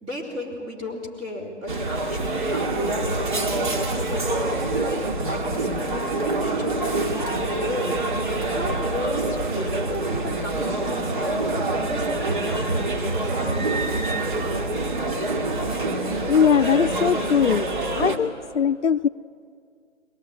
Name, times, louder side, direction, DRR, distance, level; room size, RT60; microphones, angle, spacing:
voice 1, 0.0-4.7 5.2-15.3, left 1 dB, 15° right, -4 dB, 4.0 m, -34 dB
sound 1, 1.7-18.2, right 2 dB, 40° right, 2.3 m, -26 dB
voice 2, 16.3-17.7 18.0-19.1, left 7 dB, 65° left, 12 dB, 0.6 m, -20 dB
22.5 x 19.0 x 8.9 m, 2.2 s
figure-of-eight pair, 150°, 38 cm